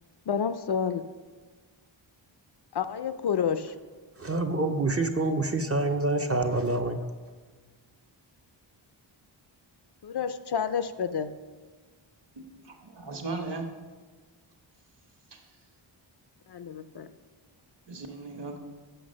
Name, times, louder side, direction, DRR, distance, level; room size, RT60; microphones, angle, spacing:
voice 1, 0.3-1.0 2.7-3.7 10.0-11.3 16.5-17.1, left 7 dB, 55° left, 10 dB, 0.5 m, -29 dB
voice 2, 4.2-7.0, right 2 dB, 30° right, 6 dB, 0.5 m, -27 dB
voice 3, 12.4-13.8 15.3-15.4 17.9-18.6, right 3 dB, 55° right, 4 dB, 1.2 m, -37 dB
7.9 x 5.7 x 6.4 m, 1.4 s
wide cardioid pair, 110°, 48 cm